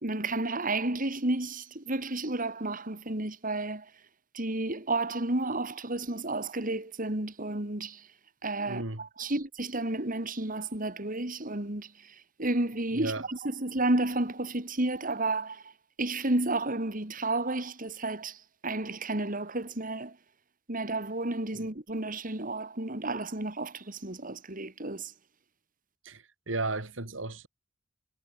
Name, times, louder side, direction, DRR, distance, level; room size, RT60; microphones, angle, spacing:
voice 1, 0.0-3.9 4.3-8.1 8.4-15.7 16.0-20.2 20.7-25.1, right 2 dB, 45° right, 3.1 m, -32 dB
voice 2, 8.7-9.0 12.9-13.3 21.5-21.7 26.0-27.5, right 2 dB, 75° right, 3.3 m, -35 dB
head